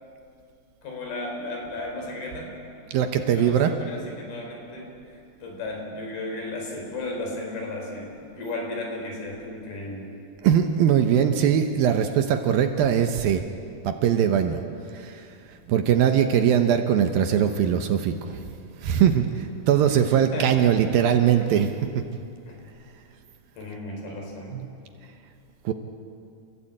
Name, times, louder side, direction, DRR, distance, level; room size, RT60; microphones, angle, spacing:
voice 1, 0.8-2.6 3.3-5.0 5.4-10.2 20.3-21.2 22.5-22.6 23.6-24.6, left 2 dB, 65° left, 1 dB, 5.9 m, -35 dB
voice 2, 2.9-3.7 10.4-13.4 13.8-14.6 14.9-15.2 15.7-18.4 18.8-21.7 24.5-24.7 25.7-25.8, right 9 dB, 70° right, 6 dB, 2.5 m, -21 dB
29.0 x 15.5 x 8.7 m, 2.5 s
omnidirectional pair, 4.7 m